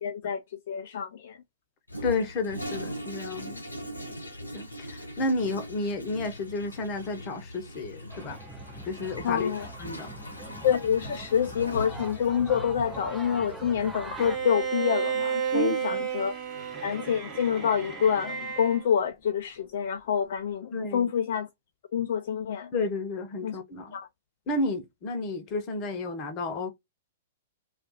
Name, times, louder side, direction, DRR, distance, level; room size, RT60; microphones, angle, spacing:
voice 1, 0.0-0.4 0.7-1.4 9.2-9.7 10.6-16.3 16.8-21.5 21.9-22.7 23.4-23.6 23.9-24.1, left 8 dB, 55° left, 0.3 m, -27 dB
Toilet flush, 1.9-14.7, equal, 80° left, 0.9 m, -41 dB
voice 2, 2.0-3.6 4.5-8.4 8.9-9.5 9.8-10.1 15.5-16.0 20.7-21.1 22.7-24.0 24.5-26.7, left 2 dB, 30° left, 0.7 m, -31 dB
sound 1, 8.1-14.4, right 2 dB, 5° right, 0.5 m, -42 dB
Bowed string instrument, 14.2-18.8, right 7 dB, 20° right, 0.9 m, -32 dB
2.4 x 2.3 x 3.8 m
figure-of-eight pair, 105°, 0 cm